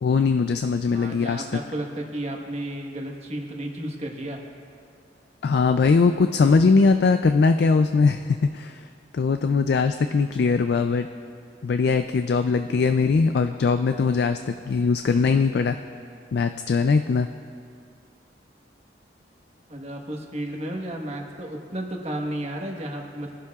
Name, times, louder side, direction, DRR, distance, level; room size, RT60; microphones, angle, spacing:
voice 1, 0.0-1.6 5.4-8.8 9.1-11.1 11.6-15.8 16.3-17.3, left 4 dB, 60° left, 8 dB, 0.3 m, -21 dB
voice 2, 0.9-4.4 19.7-23.3, right 1 dB, 35° right, 1 dB, 1.3 m, -33 dB
22.0 x 11.5 x 2.4 m, 2.4 s
head